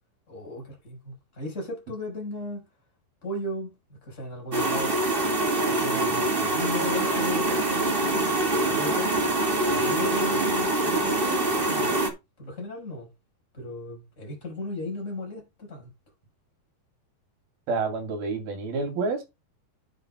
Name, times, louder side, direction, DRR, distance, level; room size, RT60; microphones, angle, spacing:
voice 1, 0.3-2.6 3.2-5.0 5.6-8.3 8.7-9.3 9.7-11.9 12.4-13.1 13.5-15.9, left 1 dB, 20° left, 4.9 m, -36 dB
sound 1, 4.5-12.1, right 2 dB, 30° right, 0.9 m, -24 dB
voice 2, 17.7-19.2, right 4 dB, 75° right, 4.4 m, -28 dB
9.9 x 8.8 x 2.3 m
omnidirectional pair, 4.4 m